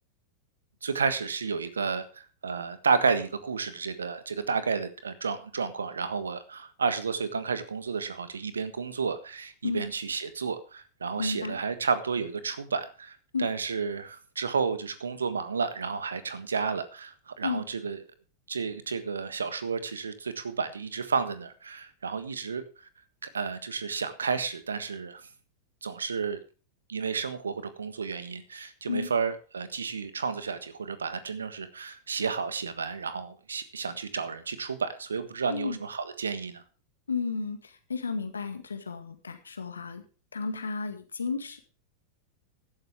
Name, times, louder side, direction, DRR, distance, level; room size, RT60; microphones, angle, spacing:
voice 1, 0.8-18.0 18.5-22.9 23.2-25.2 25.8-26.4 26.9-36.6, right 5 dB, 70° right, 12 dB, 1.5 m, -31 dB
voice 2, 11.2-11.6 13.3-13.5 17.4-17.7 28.9-29.1 35.5-35.8 37.1-40.0 40.3-41.6, left 4 dB, 75° left, 8 dB, 1.8 m, -32 dB
15.0 x 11.5 x 3.6 m, 0.35 s
figure-of-eight pair, 90°, 0 cm